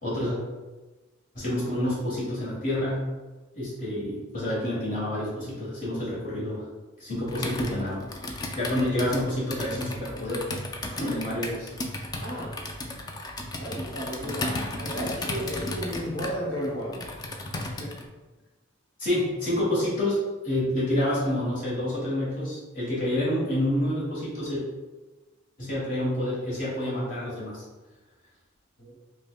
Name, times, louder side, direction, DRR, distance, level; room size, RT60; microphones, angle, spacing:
voice 1, 0.0-0.4 1.3-3.0 3.5-6.6 7.0-8.0 8.5-10.4 10.9-11.7 19.0-24.6 25.6-27.6, left 1 dB, 45° left, -8 dB, 1.2 m, -28 dB
Computer keyboard, 7.3-18.1, left 1 dB, 20° left, 0.3 m, -34 dB
voice 2, 8.7-9.0 12.2-12.6 13.5-17.1 17.8-18.0 28.8-29.0, equal, 65° left, -8 dB, 1.1 m, -34 dB
5.2 x 2.1 x 2.3 m, 1.2 s
head